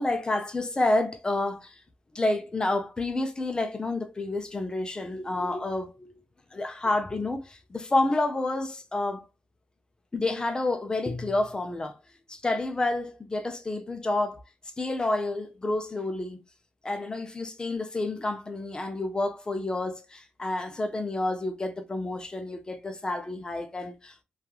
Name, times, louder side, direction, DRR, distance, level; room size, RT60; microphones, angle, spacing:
voice 1, 0.0-1.8 2.1-6.1 6.5-9.2 10.1-12.0 12.3-14.4 14.8-16.4 16.8-24.2, left 2 dB, 20° left, 0.4 m, -29 dB
3.0 x 2.3 x 2.3 m
wide cardioid pair, 160°, 4 cm